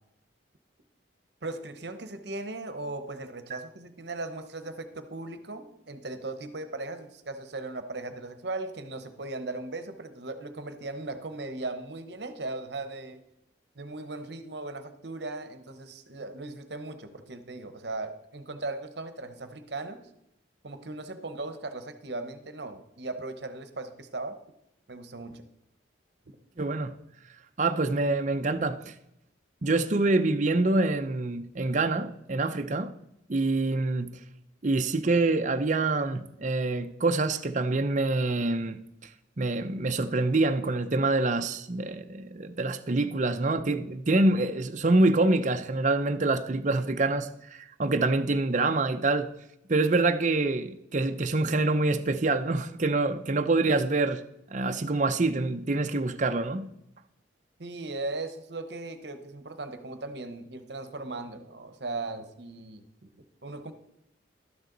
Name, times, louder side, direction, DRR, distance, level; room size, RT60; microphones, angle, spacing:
voice 1, 1.4-13.2 13.8-20.0 20.6-24.3 24.9-25.4 57.6-62.8 63.2-63.7, right 2 dB, 60° right, 1.0 m, -38 dB
voice 2, 26.6-27.0 27.6-28.9 29.6-32.9 33.3-34.2 34.6-38.8 39.4-49.3 49.7-54.2 54.5-56.7, right 2 dB, 40° right, 0.6 m, -26 dB
12.5 x 9.6 x 3.9 m
head